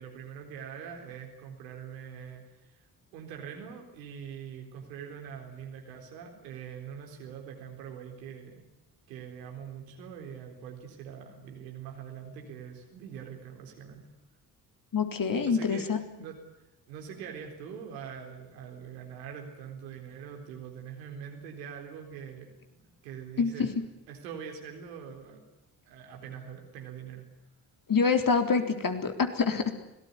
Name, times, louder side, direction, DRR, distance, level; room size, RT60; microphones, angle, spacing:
voice 1, 0.0-2.8 3.1-8.6 9.1-14.1 15.4-15.9 16.2-16.3 16.9-23.7 24.1-25.4 25.9-27.3, right 7 dB, 80° right, 3 dB, 4.1 m, -43 dB
voice 2, 14.9-16.0 23.4-23.7 27.9-29.7, left 5 dB, 40° left, 6 dB, 3.8 m, -26 dB
25.5 x 18.5 x 9.7 m, 0.90 s
hypercardioid pair, 40°, 49 cm